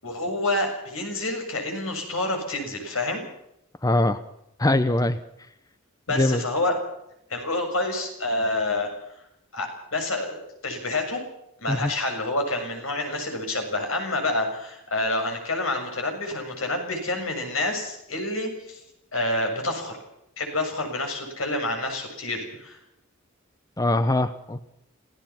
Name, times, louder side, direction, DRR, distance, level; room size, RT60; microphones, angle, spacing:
voice 1, 0.0-3.2 6.1-6.8 7.3-8.9 9.5-11.2 11.6-18.8 19.1-20.0 20.4-22.8, left 2 dB, 75° left, 4 dB, 7.0 m, -28 dB
voice 2, 3.8-4.2 4.6-5.2 6.1-6.4 11.7-11.9 23.8-24.6, left 1 dB, 15° left, 12 dB, 0.8 m, -22 dB
26.5 x 17.0 x 5.9 m, 0.81 s
head